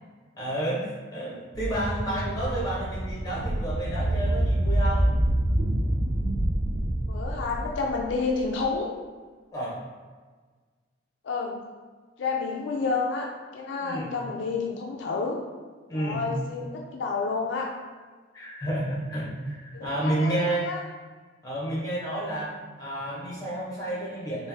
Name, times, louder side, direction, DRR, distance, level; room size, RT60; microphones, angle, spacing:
voice 1, 0.3-5.1 9.5-9.8 13.8-14.1 15.9-16.3 18.3-20.6 21.4-24.5, right 1 dB, 20° left, -6 dB, 1.0 m, -30 dB
sound 1, 1.5-8.7, right 1 dB, 35° right, 0.3 m, -26 dB
voice 2, 7.1-9.0 11.2-11.6 12.2-15.4 15.9-17.7 19.7-20.8, left 4 dB, 70° left, 0 dB, 0.4 m, -30 dB
3.3 x 2.6 x 3.4 m, 1.5 s
head